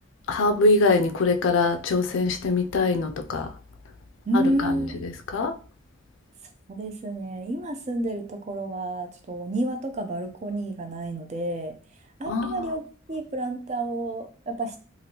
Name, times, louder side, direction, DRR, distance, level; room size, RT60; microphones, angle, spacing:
voice 1, 0.3-3.5 4.3-5.6 12.3-12.7, left 3 dB, 75° left, 0.4 m, -23 dB
voice 2, 4.3-5.1 6.7-11.7 12.2-12.8 13.1-14.8, right 1 dB, 35° right, 0.4 m, -29 dB
3.0 x 2.5 x 2.7 m
head